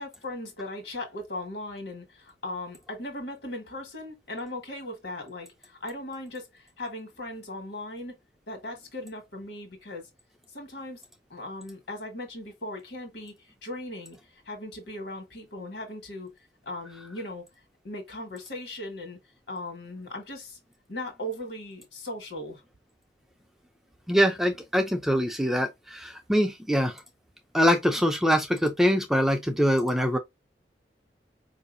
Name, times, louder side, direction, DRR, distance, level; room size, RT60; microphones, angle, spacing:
voice 1, 0.0-8.2 8.5-10.1 10.5-11.0 11.3-16.3 16.6-17.5 17.8-19.2 19.5-20.6 20.9-22.6, left 1 dB, 65° left, 1.5 m, -38 dB
voice 2, 24.1-26.9 27.5-30.2, equal, ahead, 0.4 m, -23 dB
4.7 x 2.6 x 2.5 m
head